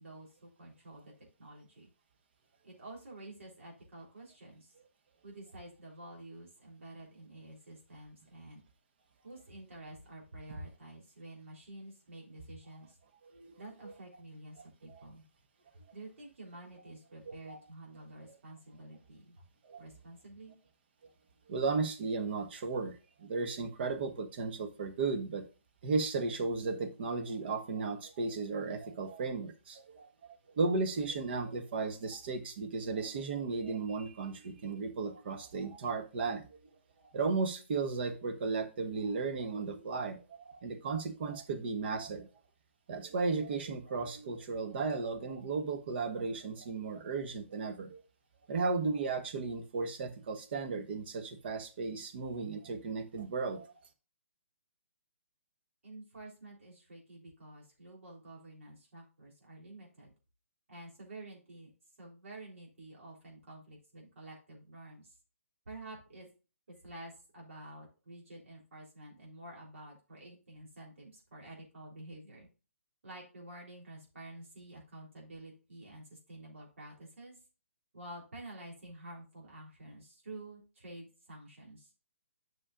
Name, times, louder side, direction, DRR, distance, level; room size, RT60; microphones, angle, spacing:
voice 1, 0.0-1.9 2.6-4.7 5.2-8.6 9.2-13.0 13.6-15.2 15.9-19.4 19.8-20.5 55.8-60.1 60.7-61.7 62.0-65.2 65.7-66.3 66.7-72.5 73.0-77.4 77.9-81.9, right 1 dB, 70° right, -3 dB, 3.4 m, -50 dB
voice 2, 17.2-17.6 19.6-19.8 21.5-25.4 25.8-36.5 37.1-42.3 42.9-48.0 48.5-53.7, right 4 dB, 50° right, 7 dB, 1.3 m, -35 dB
9.9 x 6.4 x 2.4 m, 0.33 s
hypercardioid pair, 140°, 7 cm